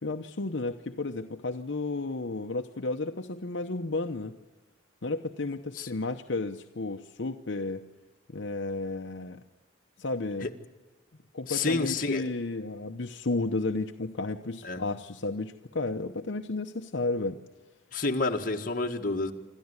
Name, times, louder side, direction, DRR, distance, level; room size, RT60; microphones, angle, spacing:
voice 1, 0.0-4.3 5.0-7.8 8.3-9.4 10.0-10.5 11.3-17.4, left 3 dB, 65° left, 5 dB, 0.9 m, -32 dB
voice 2, 11.5-12.2 14.6-14.8 17.9-19.3, left 3 dB, 45° left, 2 dB, 1.8 m, -29 dB
27.0 x 13.5 x 9.7 m, 1.3 s
head